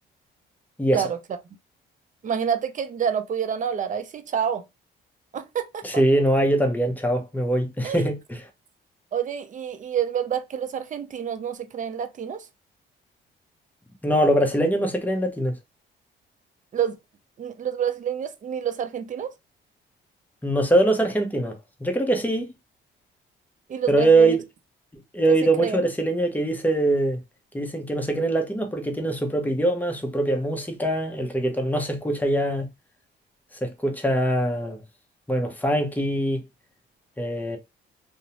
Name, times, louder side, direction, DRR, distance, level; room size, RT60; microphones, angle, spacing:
voice 1, 2.2-4.6 5.3-5.9 7.8-8.1 9.1-12.5 16.7-17.0 17.4-19.3 23.7-24.4 25.3-25.8, right 8 dB, 40° right, 0.5 m, -28 dB
voice 2, 5.8-8.4 14.0-15.6 20.4-22.5 23.9-24.4 25.1-27.2 27.5-32.7 33.6-34.8 35.3-36.4 37.2-37.6, right 1 dB, 10° left, 0.7 m, -23 dB
2.6 x 2.0 x 2.9 m
cardioid pair, 90°, 20 cm